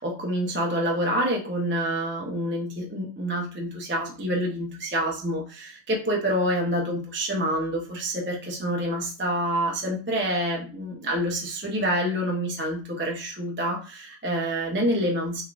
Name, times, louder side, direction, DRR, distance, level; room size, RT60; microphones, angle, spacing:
voice 1, 0.0-15.4, equal, 15° right, -1 dB, 0.4 m, -27 dB
3.6 x 3.1 x 2.4 m, 0.35 s
omnidirectional pair, 1.2 m